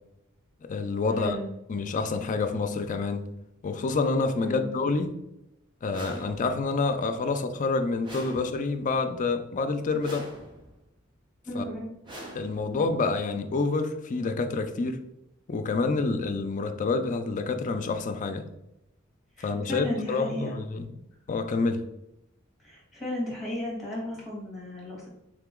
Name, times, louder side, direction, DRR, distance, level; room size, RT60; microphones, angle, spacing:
voice 1, 0.6-1.4 1.7-3.3 3.6-5.1 5.8-10.3 11.5-11.6 12.3-15.0 15.5-18.5 19.4-21.0 21.3-21.8, left 3 dB, 35° left, 0.4 m, -28 dB
sound 1, 5.9-6.8 8.0-9.0 10.0-10.8 12.0-13.0, right 1 dB, 20° right, 0.7 m, -44 dB
voice 2, 11.4-11.9 19.4-20.6 22.6-25.1, left 1 dB, ahead, 1.5 m, -34 dB
3.6 x 2.9 x 3.6 m
head